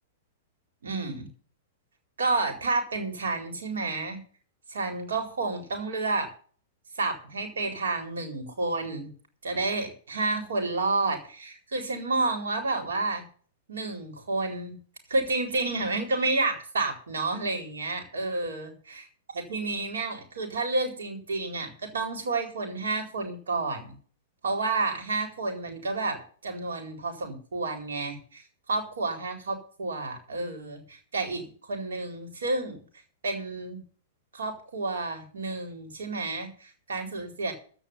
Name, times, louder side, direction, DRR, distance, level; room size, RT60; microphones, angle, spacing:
voice 1, 0.8-1.3 2.2-4.2 4.7-6.3 6.9-9.1 9.4-13.2 13.7-14.8 15.1-19.0 19.3-24.0 24.4-32.8 33.2-33.8 34.3-37.5, right 3 dB, 75° right, 5 dB, 4.2 m, -30 dB
15.0 x 5.2 x 9.7 m, 0.43 s
figure-of-eight pair, 105°, 0 cm